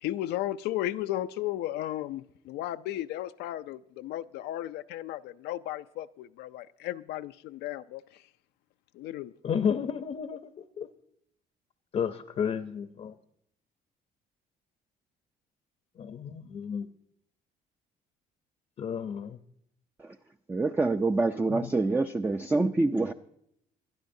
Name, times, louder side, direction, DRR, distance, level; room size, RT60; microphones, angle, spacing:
voice 1, 0.0-8.2 8.9-9.3, left 14 dB, 80° left, 0.4 m, -35 dB
voice 2, 9.4-10.9 11.9-13.1 16.0-16.9 18.8-19.4 21.5-21.7, left 7 dB, 40° left, 0.7 m, -32 dB
voice 3, 20.5-23.1, right 3 dB, 10° right, 0.4 m, -26 dB
22.0 x 12.0 x 2.7 m
cardioid pair, 110°, 17 cm